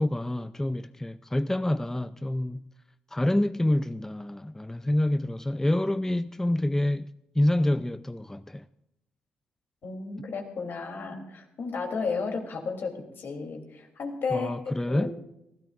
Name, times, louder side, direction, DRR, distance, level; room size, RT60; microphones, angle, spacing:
voice 1, 0.0-2.6 3.1-8.6 14.3-15.1, left 1 dB, 10° left, 0.5 m, -27 dB
voice 2, 9.8-15.1, left 4 dB, 60° left, 3.2 m, -33 dB
24.5 x 16.0 x 2.5 m
hypercardioid pair, 50°, 4 cm